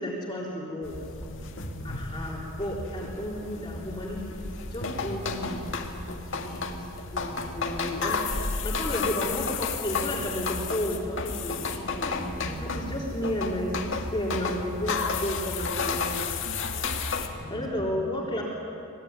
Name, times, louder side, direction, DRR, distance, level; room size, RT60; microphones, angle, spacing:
voice 1, 0.0-1.0 1.8-5.7 6.1-6.9 7.1-12.1 12.6-16.1 17.5-18.4, equal, 20° left, -4 dB, 3.7 m, -33 dB
sound 1, 0.8-17.3, left 4 dB, 60° left, 2.0 m, -32 dB
voice 2, 1.2-2.0 12.1-13.1 17.3-17.9, right 1 dB, ahead, -2 dB, 4.5 m, -41 dB
25.5 x 20.5 x 9.6 m, 2.7 s
head